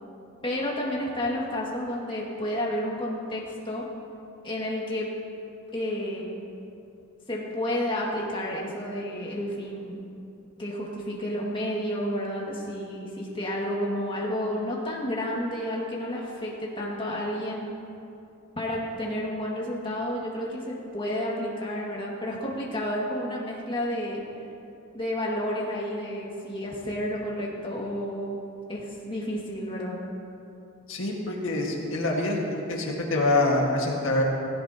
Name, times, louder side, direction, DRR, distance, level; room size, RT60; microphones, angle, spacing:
voice 1, 0.4-3.9 4.4-5.1 5.7-6.3 7.3-10.0 10.6-17.7 18.6-24.2 24.9-28.4 28.7-30.0, left 1 dB, 25° left, -4 dB, 2.2 m, -31 dB
voice 2, 30.9-34.2, left 2 dB, 65° left, -2 dB, 1.9 m, -25 dB
16.5 x 16.0 x 3.0 m, 2.7 s
head